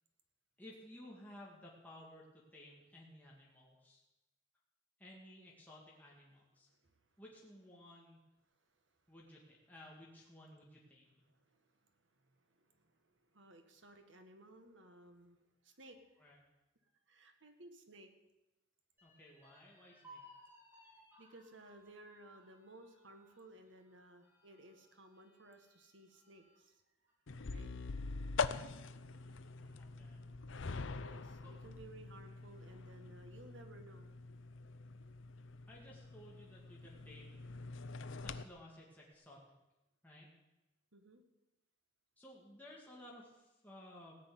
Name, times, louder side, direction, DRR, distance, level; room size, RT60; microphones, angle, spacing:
voice 1, 0.6-4.0 5.0-6.7 7.2-8.2 9.1-11.2 16.2-16.4 19.0-20.2 28.6-30.2 31.4-31.6 35.7-37.4 38.2-39.4 40.0-40.3 42.2-44.2, left 1 dB, 10° left, -4 dB, 2.1 m, -57 dB
voice 2, 6.7-7.0 8.7-8.9 11.3-16.3 17.1-18.1 21.2-26.8 27.5-27.7 31.0-34.1 40.9-41.2, right 1 dB, 70° right, 6 dB, 1.8 m, -59 dB
sound 1, 19.0-26.6 27.1-27.2 27.6-28.2, equal, 10° right, 2.9 m, -63 dB
sound 2, 27.3-38.4, left 4 dB, 70° left, 0.6 m, -44 dB
17.0 x 6.2 x 9.4 m, 0.98 s
head